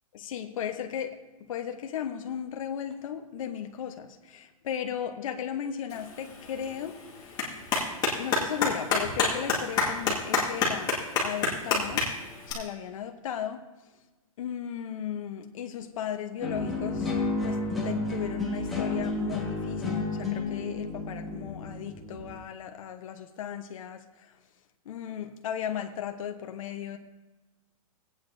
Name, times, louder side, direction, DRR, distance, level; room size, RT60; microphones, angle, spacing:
voice 1, 0.1-1.2 1.5-7.0 7.3-7.4 8.1-10.9 11.2-12.1 12.5-13.6 14.4-17.1 17.4-17.6 17.8-24.0 24.9-27.0, left 9 dB, 65° left, 5 dB, 1.0 m, -35 dB
Clapping, 5.9-12.5, left 4 dB, 20° left, 2.0 m, -29 dB
sound 1, 16.4-22.4, left 3 dB, ahead, 2.1 m, -31 dB
18.5 x 8.9 x 2.7 m, 1.1 s
hypercardioid pair, 150°, 18 cm